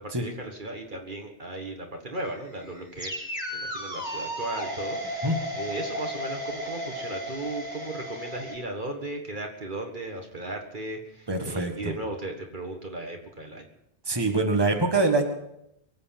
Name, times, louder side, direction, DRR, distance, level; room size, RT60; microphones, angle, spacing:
voice 1, 0.0-5.3 5.6-13.7, right 2 dB, 50° right, 3 dB, 1.7 m, -36 dB
sound 1, 2.2-8.5, equal, 5° right, 6.2 m, -34 dB
voice 2, 11.3-11.9 14.0-15.3, right 2 dB, 25° right, 4 dB, 1.7 m, -24 dB
23.5 x 8.3 x 5.8 m, 0.79 s
omnidirectional pair, 1.1 m